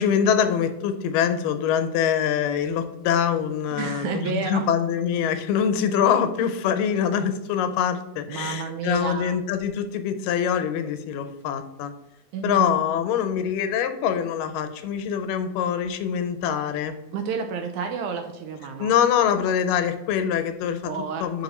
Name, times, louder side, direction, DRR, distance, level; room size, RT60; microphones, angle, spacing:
voice 1, 0.0-11.9 12.4-16.9 18.8-20.9 21.2-21.4, left 8 dB, 85° left, 9 dB, 2.3 m, -24 dB
voice 2, 3.7-4.7 8.3-9.4 12.3-12.8 17.1-18.9 20.8-21.3, right 6 dB, 80° right, 5 dB, 1.9 m, -30 dB
6.7 x 4.3 x 4.2 m, 0.94 s
omnidirectional pair, 3.8 m